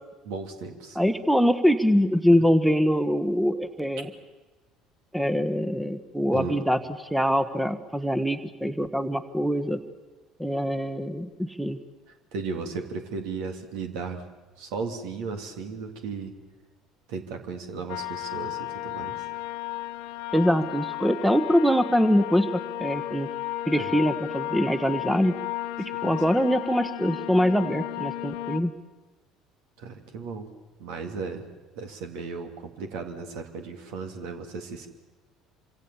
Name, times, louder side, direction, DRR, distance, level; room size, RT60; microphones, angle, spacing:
voice 1, 0.2-1.0 6.3-6.6 12.3-14.2 14.6-16.4 17.1-19.3 23.7-23.9 26.0-26.1 29.8-30.5 30.8-31.4 31.7-34.9, right 4 dB, 65° right, 6 dB, 3.0 m, -35 dB
voice 2, 0.9-4.1 5.1-6.8 7.1-9.8 10.4-11.8 20.3-23.3 23.7-25.3 25.8-28.7, equal, 5° right, 11 dB, 1.4 m, -23 dB
sound 1, 17.9-28.6, left 15 dB, 65° left, 1.3 m, -34 dB
27.5 x 26.0 x 7.2 m, 1.2 s
figure-of-eight pair, 60°, 0 cm